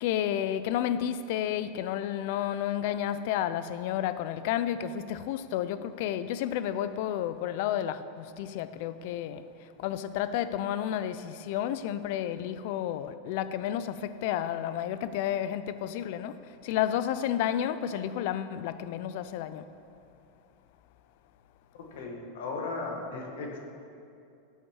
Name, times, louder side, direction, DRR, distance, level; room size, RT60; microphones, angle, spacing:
voice 1, 0.0-19.7, left 10 dB, 55° left, 0.5 m, -31 dB
voice 2, 21.9-23.6, left 3 dB, 80° left, 1.8 m, -36 dB
13.0 x 8.2 x 4.7 m
supercardioid pair, 155°, 0 cm